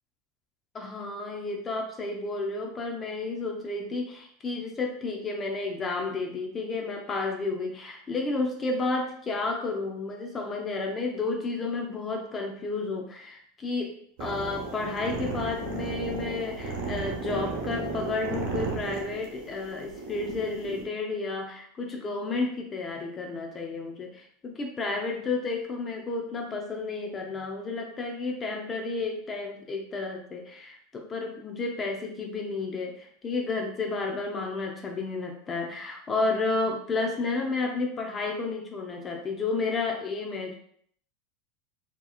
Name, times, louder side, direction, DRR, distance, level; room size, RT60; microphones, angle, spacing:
voice 1, 0.7-13.9 14.2-40.5, left 3 dB, 20° left, 2 dB, 0.4 m, -31 dB
sound 1, 14.2-20.8, right 3 dB, 65° right, 1.0 m, -34 dB
3.8 x 2.9 x 2.3 m, 0.64 s
supercardioid pair, 145°, 0 cm